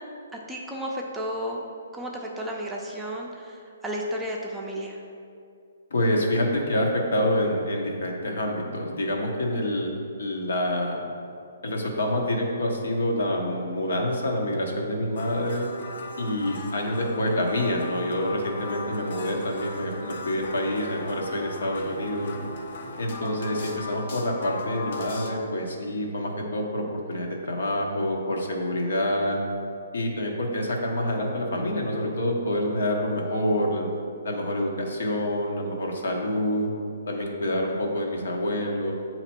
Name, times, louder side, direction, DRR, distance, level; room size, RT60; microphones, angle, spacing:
voice 1, 0.5-1.6 1.9-5.0 16.3-16.6 23.2-23.5, equal, 5° right, -2 dB, 0.5 m, -33 dB
voice 2, 5.9-9.9 10.2-11.0 11.6-15.7 16.2-22.3 23.0-29.4 29.9-33.9 34.2-36.7 37.1-38.9, left 1 dB, 80° left, 0 dB, 1.0 m, -27 dB
sound 1, 15.2-25.3, left 2 dB, 55° left, 0.6 m, -38 dB
8.0 x 2.9 x 4.3 m, 2.4 s
hypercardioid pair, 155°, 0 cm